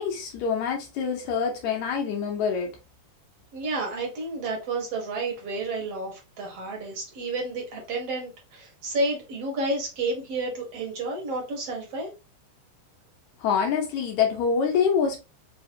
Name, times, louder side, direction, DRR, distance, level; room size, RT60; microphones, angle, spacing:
voice 1, 0.0-2.7 13.4-15.2, left 6 dB, 75° left, 1.8 m, -25 dB
voice 2, 3.5-12.1, right 2 dB, 55° right, 2.1 m, -31 dB
4.9 x 2.9 x 2.7 m
omnidirectional pair, 3.7 m